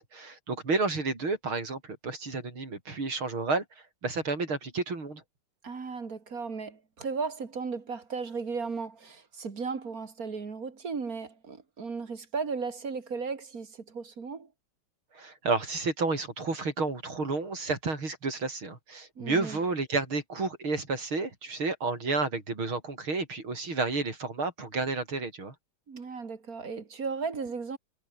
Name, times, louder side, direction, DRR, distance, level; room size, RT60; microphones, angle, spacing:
voice 1, 0.1-3.6 4.0-5.2 15.1-25.5, right 3 dB, 75° right, 6.3 m, -31 dB
voice 2, 5.6-14.5 19.2-19.6 25.9-27.8, right 5 dB, 45° right, 2.7 m, -35 dB
omnidirectional pair, 2.3 m